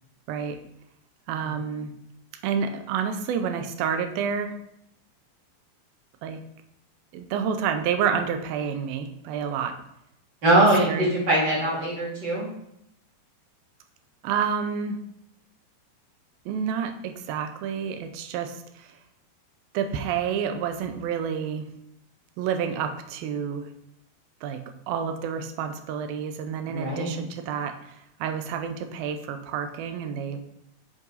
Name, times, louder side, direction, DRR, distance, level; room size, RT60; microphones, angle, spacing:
voice 1, 1.3-1.9 2.4-4.6 6.2-6.4 7.1-9.8 10.6-11.2 14.2-15.0 16.5-18.9 19.7-21.7 22.4-23.7 24.4-30.4, right 7 dB, 80° right, 7 dB, 2.5 m, -29 dB
voice 2, 10.4-12.5 26.7-27.1, right 1 dB, 35° right, -5 dB, 2.3 m, -22 dB
7.4 x 5.4 x 4.0 m, 0.77 s
omnidirectional pair, 4.3 m